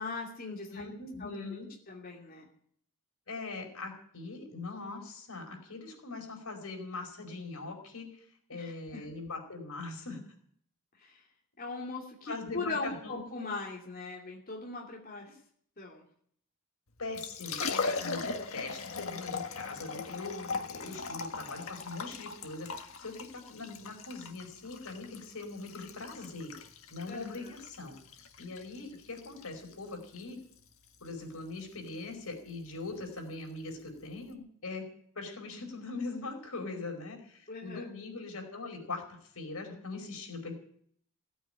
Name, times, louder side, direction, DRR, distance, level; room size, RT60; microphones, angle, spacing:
voice 1, 0.0-0.8 1.2-1.4 1.9-2.5 8.5-9.0 11.0-11.2 11.6-15.4 15.8-16.0 27.1-27.5 37.5-37.9, left 3 dB, 40° left, -2 dB, 2.8 m, -40 dB
voice 2, 0.7-1.7 3.3-8.1 8.5-10.4 12.3-13.2 17.0-26.5 26.9-28.0 28.4-30.4 31.0-34.9 35.1-39.0 39.3-40.5, left 3 dB, 90° left, 3 dB, 4.7 m, -41 dB
Liquid, 17.0-34.3, left 4 dB, 70° left, 1.6 m, -40 dB
16.5 x 9.2 x 8.9 m, 0.63 s
head